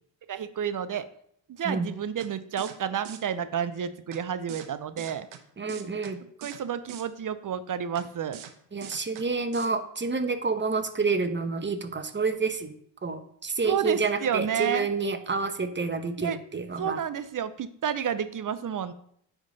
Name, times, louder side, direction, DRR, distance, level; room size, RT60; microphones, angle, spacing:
voice 1, 0.3-1.1 1.6-5.3 6.4-8.4 13.7-14.9 16.2-16.4 16.8-18.9, right 8 dB, 40° right, 13 dB, 0.6 m, -30 dB
sound 1, 2.2-2.3 2.6-2.8 3.0-3.2 4.1-4.2 4.5-4.7 5.0-5.4 5.7-6.1 6.4-6.6 6.9-7.0 8.0-8.1 8.3-8.5 8.8-9.2 9.5-9.7, right 10 dB, 75° right, 0.9 m, -42 dB
voice 2, 5.6-6.2 8.7-12.7 13.0-17.0, right 4 dB, 25° right, 8 dB, 1.0 m, -29 dB
9.5 x 3.7 x 4.0 m, 0.65 s
supercardioid pair, 55°, 48 cm